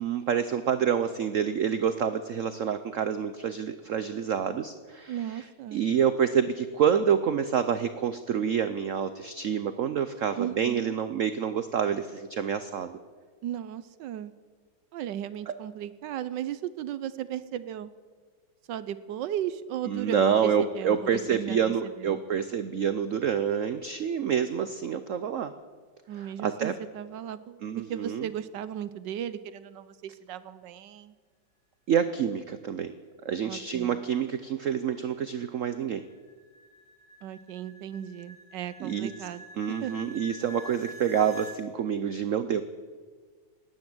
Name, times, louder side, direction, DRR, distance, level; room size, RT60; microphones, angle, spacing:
voice 1, 0.0-5.4 5.7-13.0 15.5-15.6 19.9-25.5 26.1-26.7 27.6-28.3 31.9-32.9 33.2-36.0 38.8-39.1 39.6-42.6, right 8 dB, 90° right, 11 dB, 0.6 m, -27 dB
voice 2, 5.1-5.9 10.4-10.9 13.4-14.3 14.9-17.9 18.7-22.2 26.1-31.1 33.4-34.0 37.2-39.9, right 10 dB, 70° right, 15 dB, 1.2 m, -36 dB
sound 1, 34.4-41.6, right 1 dB, 5° right, 6.1 m, -47 dB
19.0 x 9.8 x 7.7 m, 1.6 s
omnidirectional pair, 2.2 m